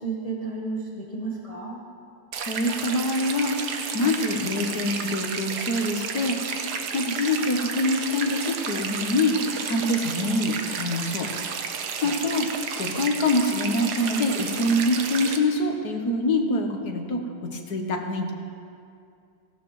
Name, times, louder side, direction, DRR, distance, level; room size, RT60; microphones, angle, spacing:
voice 1, 0.0-1.8 12.0-12.2, right 3 dB, 25° left, -2 dB, 1.0 m, -32 dB
sound 1, 2.3-15.4, right 6 dB, 70° right, 1.4 m, -32 dB
voice 2, 2.4-11.3 12.0-12.5 12.8-18.3, left 1 dB, 65° left, 3 dB, 1.7 m, -25 dB
17.5 x 15.0 x 3.1 m, 2.4 s
omnidirectional pair, 1.9 m